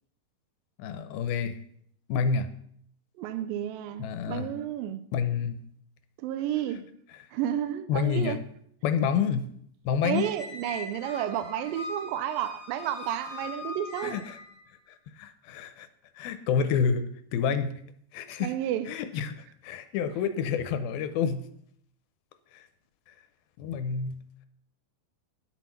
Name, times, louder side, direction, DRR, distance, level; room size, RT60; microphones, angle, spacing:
voice 1, 0.8-1.6 2.1-2.5 4.0-4.5 5.1-5.6 7.9-8.4 8.8-9.5 9.9-10.3 14.0-14.4 15.2-15.9 16.2-17.7 18.1-18.6 18.9-21.4 22.5-22.6 23.6-24.2, left 6 dB, 85° left, 2.4 m, -28 dB
voice 2, 3.2-5.0 6.2-6.9 7.3-8.4 10.0-14.2 18.4-18.9, right 11 dB, 85° right, 2.1 m, -31 dB
Squeak, 10.1-14.6, left 2 dB, 25° right, 2.9 m, -41 dB
11.0 x 6.3 x 5.7 m
omnidirectional pair, 4.5 m